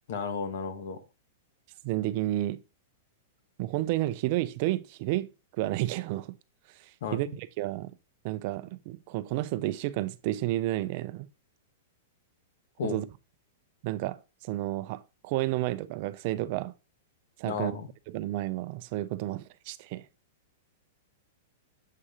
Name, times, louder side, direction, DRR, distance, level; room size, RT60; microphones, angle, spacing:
voice 1, 0.1-1.0 7.0-7.4 12.8-13.0 17.4-17.9, left 5 dB, 60° left, 1.2 m, -33 dB
voice 2, 1.8-2.6 3.6-6.3 6.8-7.9 8.2-11.3 12.8-13.1 13.8-16.7 17.4-17.8 18.1-20.1, right 16 dB, 40° right, 0.4 m, -31 dB
7.5 x 2.8 x 4.9 m
supercardioid pair, 160°, 0 cm